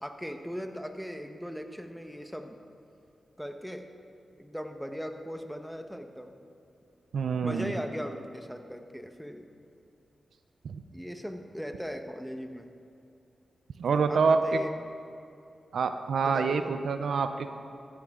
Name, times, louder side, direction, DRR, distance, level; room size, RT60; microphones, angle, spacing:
voice 1, 0.0-2.6 3.4-3.9 4.4-6.3 7.4-9.5 10.9-12.7 14.1-14.7 16.2-16.7, equal, ahead, 6 dB, 1.2 m, -38 dB
voice 2, 7.1-7.7 10.6-10.8 13.8-14.6 15.7-17.5, right 5 dB, 80° right, 8 dB, 0.5 m, -26 dB
14.5 x 11.0 x 3.8 m, 2.7 s
supercardioid pair, 45°, 0 cm